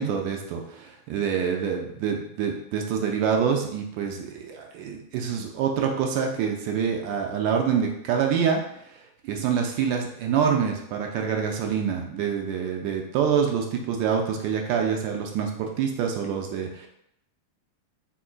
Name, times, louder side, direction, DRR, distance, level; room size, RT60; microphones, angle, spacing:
voice 1, 0.0-8.6 9.2-16.9, right 7 dB, 45° right, 2 dB, 0.4 m, -26 dB
3.5 x 2.5 x 2.4 m, 0.76 s
figure-of-eight pair, 90°, 0 cm